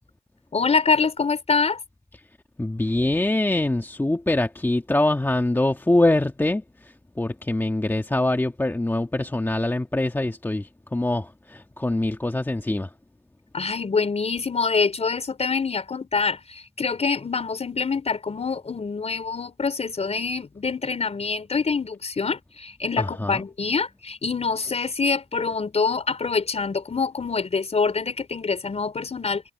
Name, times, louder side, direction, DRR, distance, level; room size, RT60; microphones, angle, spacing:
voice 1, 0.5-1.8 13.5-29.4, left 4 dB, 30° left, 4.8 m, -25 dB
voice 2, 2.6-12.9 23.0-23.4, left 2 dB, 10° left, 1.7 m, -24 dB
cardioid pair, 90°, 20 cm